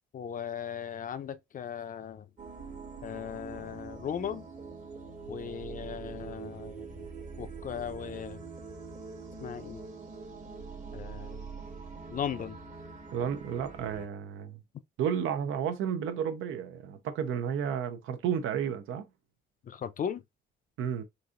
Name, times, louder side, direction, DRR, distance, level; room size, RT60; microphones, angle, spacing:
voice 1, 0.1-2.3 3.0-4.5 5.3-6.9 7.4-8.4 9.4-9.8 10.9-11.4 12.1-12.6 19.6-20.2, left 8 dB, 45° left, 0.4 m, -37 dB
sound 1, 2.4-14.1, right 5 dB, 40° right, 1.1 m, -44 dB
voice 2, 13.1-14.6 15.0-19.0 20.8-21.0, right 8 dB, 80° right, 0.7 m, -32 dB
4.0 x 2.6 x 2.4 m
cardioid pair, 90°, 20 cm